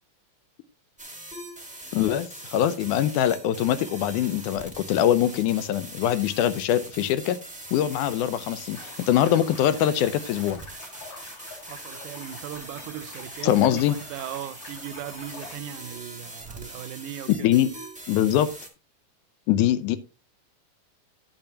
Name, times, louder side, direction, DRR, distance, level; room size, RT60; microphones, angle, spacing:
sound 1, 1.0-18.7, right 1 dB, 10° right, 0.5 m, -42 dB
voice 1, 1.9-7.4 7.7-10.6 13.4-14.0 17.4-17.7 18.1-18.5 19.5-20.0, left 11 dB, 80° left, 2.1 m, -23 dB
sound 2, 8.7-15.5, left 3 dB, 65° left, 5.4 m, -46 dB
voice 2, 11.7-17.5, right 11 dB, 80° right, 2.0 m, -38 dB
10.5 x 9.0 x 2.8 m
omnidirectional pair, 3.7 m